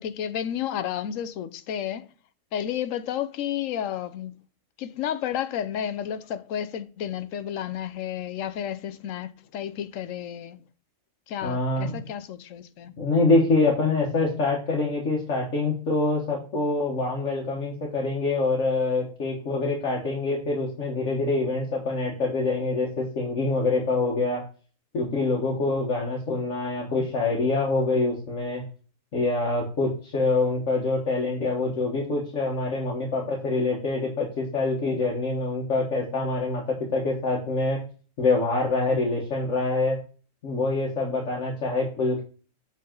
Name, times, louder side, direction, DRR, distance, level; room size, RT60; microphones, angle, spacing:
voice 1, 0.0-2.1 2.5-4.3 4.8-10.6 11.3-12.9, left 10 dB, 90° left, 1.0 m, -31 dB
voice 2, 11.4-12.0 13.0-24.5 24.9-28.6 29.1-37.8 38.2-40.0 40.4-42.2, left 3 dB, 70° left, 1.7 m, -25 dB
7.6 x 4.0 x 3.7 m
omnidirectional pair, 1.3 m